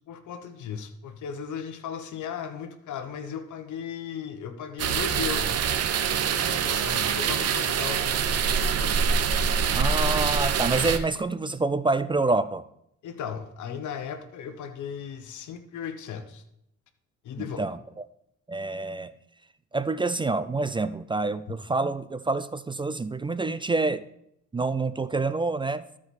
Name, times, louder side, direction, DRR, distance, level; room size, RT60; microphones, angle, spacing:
voice 1, 0.1-5.6 6.5-8.0 13.0-16.4 17.2-17.7, left 7 dB, 75° left, 9 dB, 1.1 m, -36 dB
sound 1, 4.8-11.0, right 6 dB, 55° right, 0.8 m, -25 dB
voice 2, 9.7-12.6 17.6-17.8 18.5-19.1 19.7-24.1 24.5-25.9, right 3 dB, 15° right, 13 dB, 0.3 m, -27 dB
13.0 x 4.9 x 4.2 m, 0.75 s
cardioid pair, 90°, 30 cm